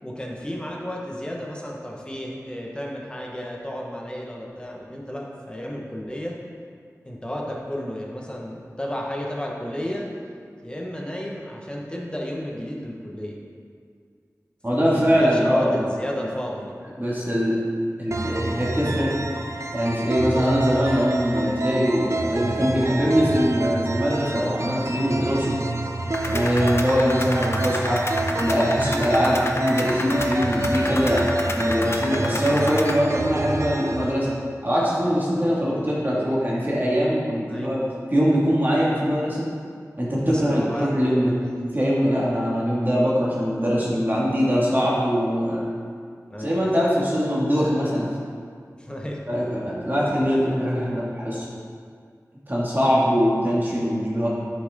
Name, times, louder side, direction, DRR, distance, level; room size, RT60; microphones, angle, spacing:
voice 1, 0.0-6.4 7.0-10.1 10.6-13.4 14.7-16.7 22.7-22.9 29.4-29.6 35.6-35.9 37.4-37.7 40.3-40.9 46.3-46.6 48.8-49.2, equal, 15° left, -2 dB, 1.6 m, -33 dB
voice 2, 14.6-15.8 17.0-17.6 18.0-19.1 19.7-25.6 26.2-28.0 28.4-31.3 31.5-34.3 34.6-37.8 38.1-39.5 40.0-41.3 41.7-45.7 46.4-48.1 49.3-51.4 52.5-54.3, equal, 35° right, -7 dB, 2.4 m, -22 dB
sound 1, 18.1-34.1, right 2 dB, 55° right, 0.6 m, -28 dB
sound 2, 26.1-33.0, left 1 dB, 45° left, 0.8 m, -31 dB
9.8 x 6.6 x 3.9 m, 2.1 s
wide cardioid pair, 45°, 6 cm